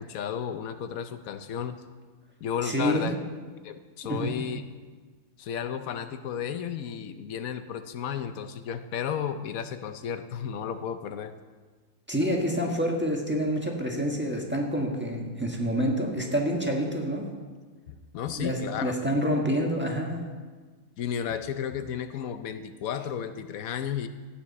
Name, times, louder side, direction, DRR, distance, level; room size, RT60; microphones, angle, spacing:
voice 1, 0.0-1.8 2.4-3.2 3.6-4.6 5.4-11.3 17.9-18.9 21.0-24.1, left 8 dB, 85° left, 9 dB, 1.1 m, -33 dB
voice 2, 2.6-3.1 4.0-4.4 12.1-17.3 18.4-20.2, equal, 10° right, 0 dB, 1.5 m, -27 dB
16.0 x 9.1 x 4.2 m, 1.4 s
omnidirectional pair, 1.4 m